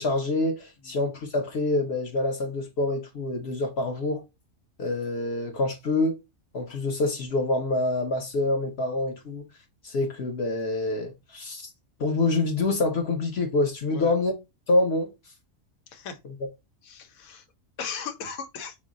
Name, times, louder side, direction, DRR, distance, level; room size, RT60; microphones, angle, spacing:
voice 1, 0.0-4.2 4.8-6.2 6.5-9.4 9.8-11.7 12.0-14.3 14.7-15.1, left 2 dB, 55° left, 1.0 m, -26 dB
voice 2, 15.9-16.2 16.8-17.5 17.8-18.8, left 6 dB, 90° left, 1.2 m, -37 dB
5.3 x 2.1 x 3.6 m
omnidirectional pair, 1.4 m